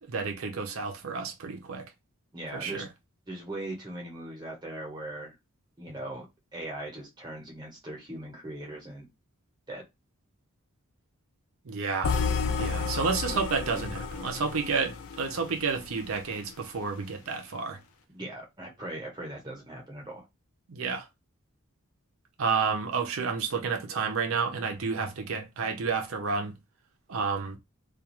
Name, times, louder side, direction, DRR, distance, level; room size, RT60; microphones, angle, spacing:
voice 1, 0.0-1.9 2.5-2.9 11.6-12.1 12.6-17.8 20.7-21.1 22.4-26.5 27.1-27.6, right 5 dB, 70° right, 0.6 m, -30 dB
voice 2, 2.3-2.8 3.3-5.3 5.8-6.3 6.5-9.1 9.7-9.8 18.1-20.2, right 1 dB, 20° right, 0.9 m, -39 dB
sound 1, 12.0-16.2, left 5 dB, 70° left, 0.4 m, -31 dB
2.4 x 2.4 x 2.9 m
head